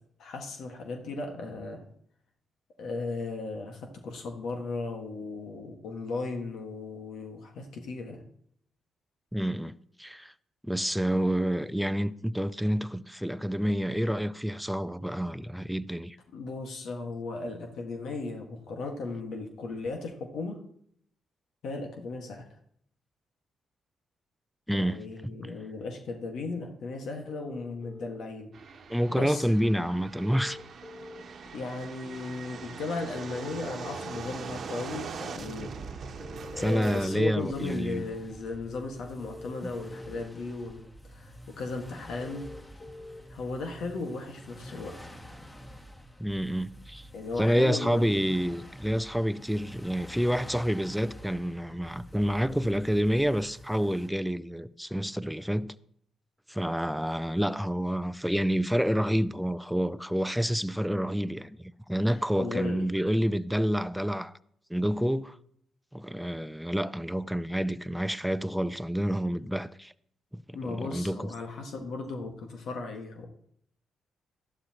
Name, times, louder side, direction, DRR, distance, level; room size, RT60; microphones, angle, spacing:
voice 1, 0.2-1.8 2.8-8.2 16.3-20.6 21.6-22.5 24.8-28.5 29.1-29.9 31.5-35.7 36.5-40.8 41.1-42.5 43.3-45.0 47.1-48.3 62.4-62.8 70.5-73.3, left 3 dB, 70° left, 1.6 m, -36 dB
voice 2, 9.3-9.7 10.0-10.3 10.6-16.2 24.7-25.5 28.9-30.6 36.6-38.1 39.6-39.7 46.2-47.1 47.4-55.7 56.5-61.6 61.9-64.3 64.7-65.4 65.9-69.9 70.3-71.2, equal, ahead, 0.6 m, -28 dB
sound 1, 27.3-28.2 30.2-31.2 33.2-34.2 36.2-37.2 39.2-40.2 42.2-43.2, left 2 dB, 45° left, 1.5 m, -45 dB
sound 2, 28.5-37.1, right 5 dB, 60° right, 1.1 m, -41 dB
sound 3, 37.4-54.1, equal, 15° left, 2.0 m, -48 dB
13.5 x 11.5 x 2.9 m
hypercardioid pair, 45°, 0 cm